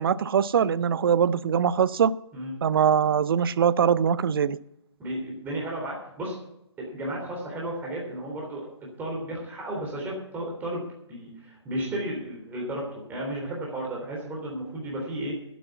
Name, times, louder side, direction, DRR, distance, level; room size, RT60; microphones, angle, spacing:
voice 1, 0.0-2.1 2.6-4.6, right 7 dB, 50° right, 19 dB, 0.6 m, -22 dB
voice 2, 5.0-6.4 6.8-8.7 9.0-10.8 11.1-15.4, right 1 dB, 10° right, -3 dB, 3.6 m, -33 dB
11.5 x 8.5 x 8.2 m, 0.81 s
figure-of-eight pair, 135°, 15 cm